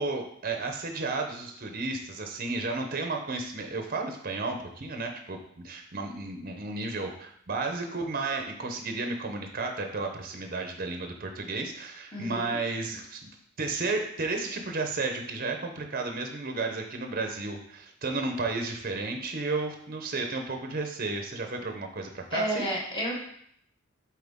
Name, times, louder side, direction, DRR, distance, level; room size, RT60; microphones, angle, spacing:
voice 1, 0.0-13.3 13.6-22.6, right 3 dB, 45° right, 4 dB, 0.8 m, -33 dB
voice 2, 12.1-12.6 22.3-23.1, right 1 dB, 25° left, -3 dB, 1.8 m, -31 dB
8.0 x 4.4 x 3.6 m, 0.67 s
head